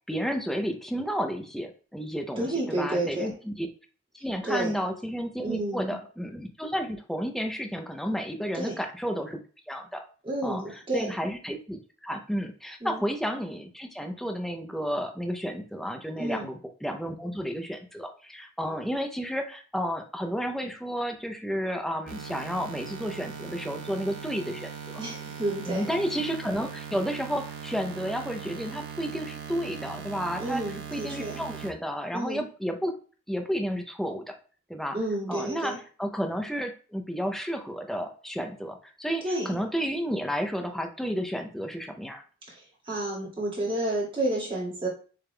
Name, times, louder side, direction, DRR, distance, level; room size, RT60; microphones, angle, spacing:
voice 1, 0.1-3.7 4.2-9.4 9.7-10.0 10.4-25.0 25.7-33.0 33.3-34.3 34.7-35.0 35.3-42.2, equal, ahead, 4 dB, 0.6 m, -32 dB
voice 2, 2.4-3.3 4.4-4.8 5.4-6.0 8.5-8.8 10.2-11.1 12.8-13.0 16.2-16.4 25.0-25.9 30.4-31.4 32.1-32.4 34.9-35.8 39.2-39.6 42.5-44.9, right 1 dB, 25° right, -5 dB, 2.1 m, -30 dB
sound 1, 22.1-31.7, right 7 dB, 70° right, 1.0 m, -40 dB
6.9 x 3.4 x 2.2 m, 0.38 s
head